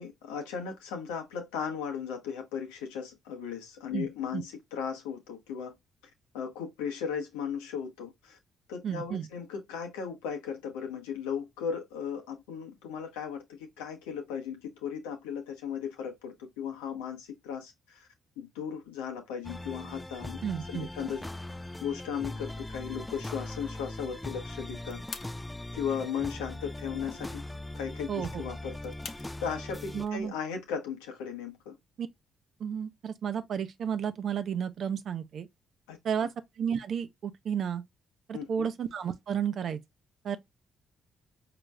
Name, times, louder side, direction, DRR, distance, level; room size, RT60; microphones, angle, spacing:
voice 1, 0.0-5.8 6.3-8.4 8.7-18.1 18.4-20.4 20.7-21.2 21.8-25.0 25.7-27.4 27.7-31.8 35.9-36.3 38.3-38.7, left 7 dB, 85° left, 1.0 m, -36 dB
voice 2, 3.9-4.4 8.8-9.3 20.4-20.9 28.1-28.4 29.9-30.3 32.0-32.1 32.6-35.5 36.0-36.3 36.6-37.8 38.3-39.8 40.2-40.4, right 8 dB, 65° right, 0.6 m, -32 dB
sound 1, 19.4-30.1, left 1 dB, 15° left, 0.3 m, -40 dB
sound 2, 24.5-30.3, left 5 dB, 55° left, 0.8 m, -50 dB
5.0 x 2.9 x 2.2 m
hypercardioid pair, 45°, 0 cm